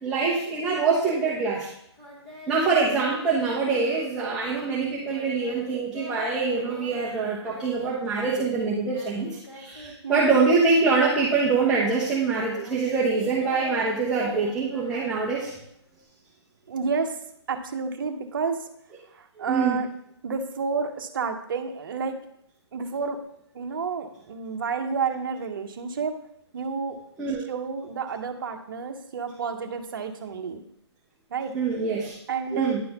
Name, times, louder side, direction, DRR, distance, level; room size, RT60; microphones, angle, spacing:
voice 1, 0.0-1.7 2.5-15.5 19.4-19.8 27.2-27.4 31.5-32.1 32.5-32.8, right 4 dB, 5° right, -6 dB, 0.5 m, -24 dB
Singing, 2.0-9.9 10.2-16.0, left 1 dB, 25° left, 1.9 m, -44 dB
voice 2, 10.0-10.4 16.7-17.2 17.5-18.7 19.1-19.9 20.2-22.2 22.7-23.2 23.5-26.2 26.5-27.0 27.5-30.6 31.3-31.5 32.3-32.7, right 5 dB, 50° right, 6 dB, 0.8 m, -30 dB
10.5 x 3.8 x 2.9 m, 0.73 s
hypercardioid pair, 165°, 15 cm